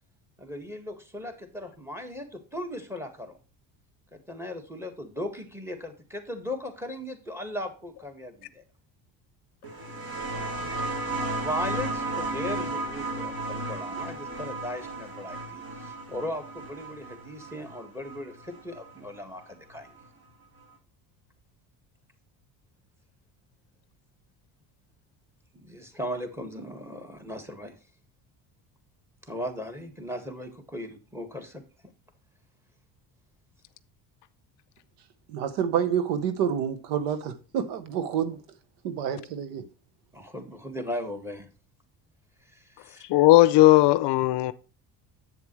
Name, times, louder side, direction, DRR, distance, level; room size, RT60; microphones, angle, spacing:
voice 1, 0.4-3.4 4.1-8.6 11.3-19.9 25.5-27.8 29.2-31.6 40.1-41.5 42.4-43.0, left 1 dB, 5° right, 1.7 m, -37 dB
sound 1, 9.6-18.9 20.0-20.1, right 2 dB, 50° right, 3.2 m, -34 dB
voice 2, 35.3-38.4 38.8-39.6, right 8 dB, 85° right, 1.0 m, -28 dB
voice 3, 43.1-44.5, left 17 dB, 60° left, 0.6 m, -17 dB
7.9 x 7.2 x 3.1 m
supercardioid pair, 85°, 47 cm